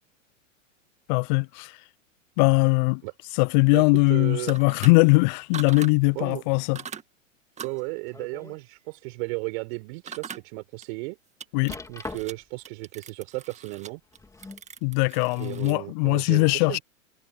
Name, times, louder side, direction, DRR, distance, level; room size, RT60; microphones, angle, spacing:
voice 1, 1.1-1.7 2.4-3.0 3.4-6.8 11.5-11.8 14.8-16.8, left 31 dB, 35° left, 0.5 m, -21 dB
voice 2, 3.7-4.6 6.1-6.4 7.6-11.2 11.9-14.0 15.4-16.8, right 28 dB, 50° right, 4.8 m, -34 dB
sound 1, 4.4-4.9 5.5-5.9 6.7-7.0 7.6-7.8 10.1-10.4 10.8-10.9 11.4-12.3 12.6-15.8, right 7 dB, 15° right, 1.9 m, -40 dB
sound 2, 7.8-8.6 9.1-9.2 9.8-9.9 11.7-12.6 13.9-14.7 15.6-15.7, left 3 dB, 10° left, 3.3 m, -41 dB
hypercardioid pair, 105°, 38 cm